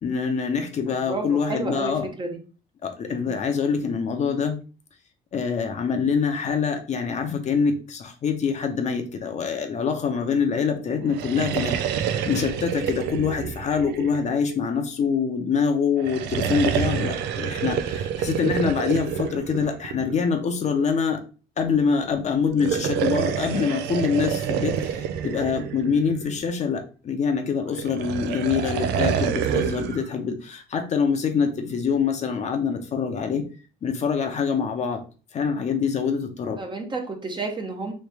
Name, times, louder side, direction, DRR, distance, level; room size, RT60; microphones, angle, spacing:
voice 1, 0.0-2.1 2.8-4.6 5.3-21.2 21.6-33.4 33.8-35.0 35.3-36.6, left 6 dB, 45° left, 5 dB, 0.7 m, -25 dB
voice 2, 0.9-2.4 3.1-3.4 10.6-10.9 36.6-37.9, right 3 dB, 25° right, 4 dB, 0.8 m, -32 dB
sound 1, 11.0-14.7 16.0-20.3 22.5-26.5 27.8-30.0, right 8 dB, 85° right, 0.5 m, -27 dB
3.2 x 3.1 x 3.3 m, 0.35 s
cardioid pair, 110°, 17 cm